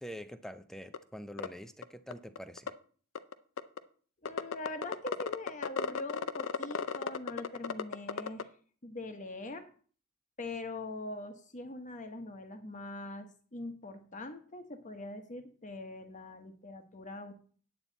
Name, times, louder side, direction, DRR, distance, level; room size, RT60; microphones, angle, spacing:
voice 1, 0.0-2.7, equal, ahead, 0.5 m, -45 dB
sound 1, 0.9-1.0 1.4-1.5 1.8-1.9 2.1-2.7 3.1-3.8 4.2-8.4, left 6 dB, 65° left, 0.6 m, -34 dB
voice 2, 4.2-8.5 8.8-9.7 10.4-17.3, left 2 dB, 35° left, 1.2 m, -43 dB
9.2 x 8.9 x 4.0 m
head